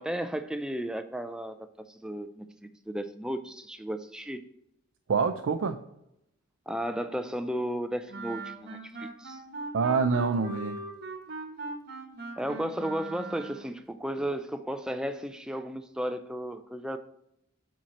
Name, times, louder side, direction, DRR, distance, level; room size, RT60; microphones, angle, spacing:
voice 1, 0.0-1.6 1.9-2.5 2.9-4.4 6.7-9.4 12.4-17.0, equal, 5° right, 8 dB, 0.4 m, -34 dB
voice 2, 5.1-5.8 9.7-10.8, right 5 dB, 85° right, 7 dB, 0.4 m, -26 dB
Wind instrument woodwind instrument, 8.1-13.8, right 2 dB, 50° right, 1.1 m, -40 dB
7.5 x 4.5 x 4.2 m, 0.80 s
head